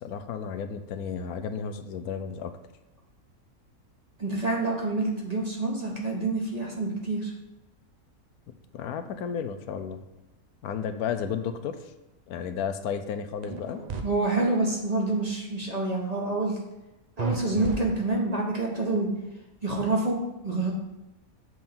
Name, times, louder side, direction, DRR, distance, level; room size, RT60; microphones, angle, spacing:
voice 1, 0.0-2.5 8.7-10.0 10.6-11.8 12.3-13.8, left 7 dB, 80° left, 9 dB, 1.1 m, -33 dB
voice 2, 4.2-7.3 14.0-16.5 17.2-19.1 19.6-20.7, right 2 dB, 30° right, -1 dB, 1.2 m, -27 dB
sound 1, 13.4-14.0 17.2-18.4, right 5 dB, 45° right, 0.5 m, -33 dB
7.8 x 3.6 x 5.9 m, 0.99 s
omnidirectional pair, 1.6 m